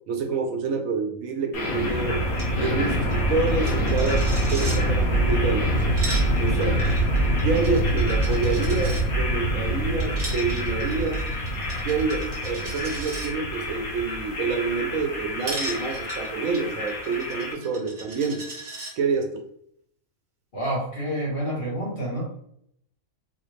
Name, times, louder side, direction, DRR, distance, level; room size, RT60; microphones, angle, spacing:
voice 1, 0.1-2.2 2.5-5.7 6.4-6.9 7.4-11.3 11.8-18.5 19.0-19.4, right 4 dB, 75° right, 4 dB, 1.0 m, -27 dB
sound 1, 1.5-17.5, right 1 dB, 85° left, 1.3 m, -25 dB
Coin (dropping), 2.3-2.5 2.8-2.9 3.1-4.8 5.7-9.0 10.0-13.3 15.4-18.9, right 1 dB, 40° right, 1.1 m, -38 dB
voice 2, 20.5-22.2, right 1 dB, 40° left, -4 dB, 1.3 m, -28 dB
4.0 x 2.4 x 3.1 m, 0.70 s
omnidirectional pair, 1.5 m